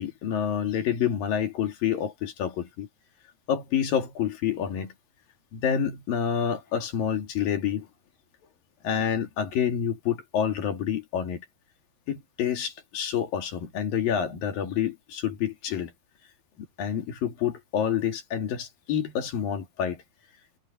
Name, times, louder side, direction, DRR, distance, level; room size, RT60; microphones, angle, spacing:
voice 1, 0.0-2.9 3.5-4.9 5.5-7.9 8.8-11.5 12.1-15.9 16.8-20.0, left 8 dB, 70° left, 4.1 m, -28 dB
omnidirectional pair, 4.1 m